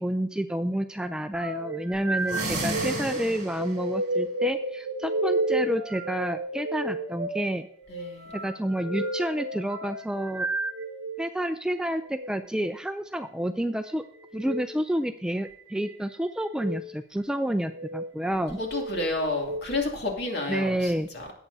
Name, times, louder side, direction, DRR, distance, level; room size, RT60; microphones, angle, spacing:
voice 1, 0.0-7.7 8.3-10.5 11.2-14.0 14.3-18.6 20.5-21.1, right 1 dB, 5° right, 8 dB, 0.3 m, -29 dB
sound 1, 1.3-11.3 12.0-12.3 14.3-14.6 15.4-16.0 16.5-16.8 17.6-18.1 18.6-19.6, right 1 dB, 65° right, 1.2 m, -32 dB
sound 2, 2.2-3.8, right 2 dB, 40° right, 5.6 m, -32 dB
voice 2, 7.9-8.4 18.6-21.3, left 2 dB, 55° left, 1 dB, 2.5 m, -31 dB
18.0 x 8.4 x 2.7 m, 0.66 s
head